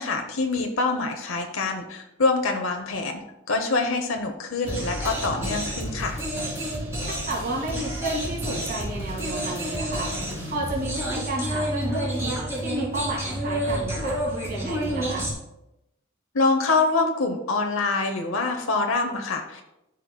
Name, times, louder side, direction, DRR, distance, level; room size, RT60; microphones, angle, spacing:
voice 1, 0.0-3.2 3.5-6.2 16.3-19.6, left 3 dB, 75° left, 4 dB, 0.9 m, -25 dB
sound 1, 4.6-15.3, right 1 dB, 15° right, 2.6 m, -29 dB
voice 2, 7.0-15.3, right 2 dB, 45° right, -2 dB, 2.0 m, -32 dB
12.5 x 5.4 x 2.2 m, 0.90 s
head